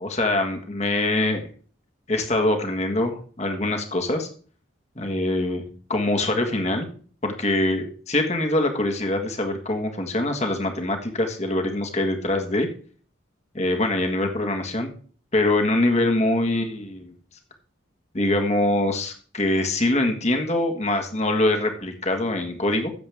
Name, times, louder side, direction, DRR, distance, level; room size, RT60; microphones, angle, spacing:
voice 1, 0.0-1.5 2.1-4.3 4.9-5.6 5.9-6.9 7.2-12.7 13.5-14.9 15.3-17.1 18.1-22.9, left 1 dB, 35° left, 4 dB, 1.6 m, -24 dB
14.5 x 7.4 x 3.5 m, 0.43 s
head